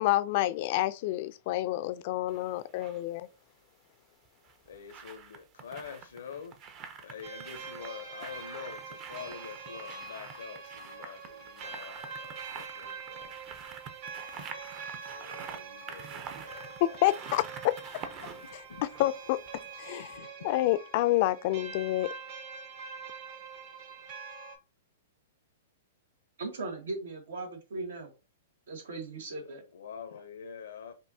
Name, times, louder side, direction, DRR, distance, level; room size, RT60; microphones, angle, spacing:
voice 1, 0.0-3.3 16.8-17.7 18.8-19.4 19.8-20.1 20.4-22.1, left 15 dB, 50° left, 0.4 m, -28 dB
sound 1, 2.3-3.0 4.3-19.8 20.1-20.2, right 6 dB, 30° right, 0.6 m, -47 dB
voice 2, 4.7-6.5 7.0-13.4 15.1-17.4 18.4-18.8 20.2-20.5 29.4-30.9, left 7 dB, 85° left, 0.6 m, -46 dB
sound 2, 7.2-24.6, right 5 dB, 50° right, 1.4 m, -44 dB
voice 3, 26.4-28.1 28.7-29.6, right 3 dB, 80° right, 1.5 m, -38 dB
5.3 x 2.6 x 2.7 m
hypercardioid pair, 140°, 0 cm